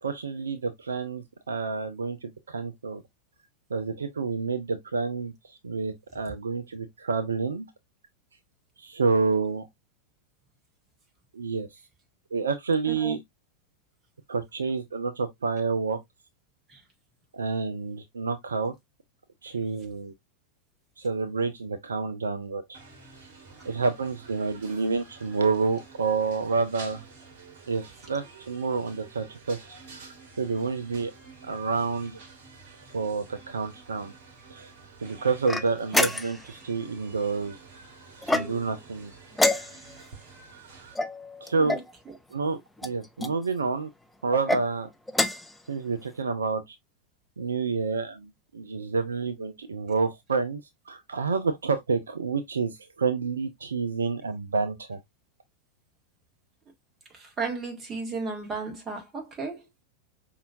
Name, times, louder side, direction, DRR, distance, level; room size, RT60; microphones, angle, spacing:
voice 1, 0.0-3.0 3.7-7.7 8.8-9.7 11.3-11.7 12.3-13.2 14.3-16.0 17.3-18.7 19.4-20.1 21.0-22.8 23.7-27.0 27.7-29.6 29.9-31.1 31.5-32.2 32.9-34.1 34.5-34.7 35.0-37.6 38.3-39.1 41.4-41.8 42.3-43.9 44.2-44.9 45.7-46.8 47.4-55.0, right 4 dB, 70° right, 0.5 m, -29 dB
voice 2, 12.8-13.2 16.7-16.8 41.6-42.2 57.1-59.7, right 4 dB, 20° right, 1.7 m, -35 dB
sound 1, 22.7-41.0, right 4 dB, 55° right, 1.6 m, -49 dB
sound 2, 35.5-36.5 38.2-38.8 39.3-40.1 40.9-41.9 42.8-43.3 44.3-44.6 45.1-45.6, left 2 dB, 5° left, 0.4 m, -27 dB
5.4 x 2.8 x 2.5 m
figure-of-eight pair, 90°, 0 cm